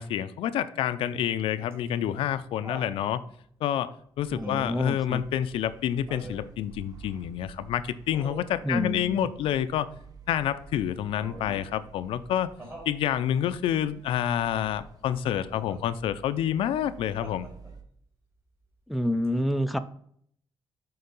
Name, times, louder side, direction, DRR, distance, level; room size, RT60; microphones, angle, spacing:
voice 1, 0.0-3.2 3.6-9.9 10.3-12.5 12.9-17.5, left 10 dB, 90° left, 0.5 m, -28 dB
Laughter, 1.7-3.0 4.4-4.9 6.1-6.5 8.1-8.6 11.2-11.7 12.6-13.0 15.3-15.8 17.2-17.9 19.2-19.3, right 1 dB, 25° right, 2.5 m, -44 dB
sound 1, 4.2-17.8, right 5 dB, 45° right, 0.9 m, -50 dB
voice 2, 4.3-5.2 8.6-9.2 18.9-19.8, equal, ahead, 0.4 m, -28 dB
6.6 x 3.9 x 5.3 m
cardioid pair, 150°, 9 cm